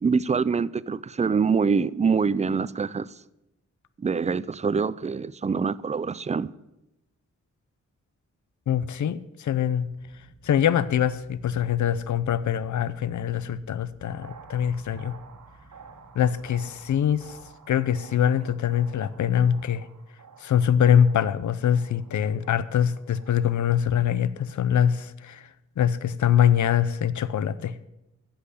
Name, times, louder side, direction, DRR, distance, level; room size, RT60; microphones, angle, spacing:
voice 1, 0.0-3.2 4.0-6.5, right 5 dB, 25° right, 0.4 m, -25 dB
voice 2, 8.7-9.9 10.4-15.1 16.1-17.4 17.7-19.9 20.4-25.5 25.8-27.8, left 9 dB, 75° left, 0.6 m, -23 dB
sound 1, 9.8-17.5, right 1 dB, 45° left, 4.7 m, -54 dB
sound 2, 14.0-24.2, right 6 dB, 75° right, 1.6 m, -51 dB
15.0 x 5.7 x 9.8 m
wide cardioid pair, 115°, 30 cm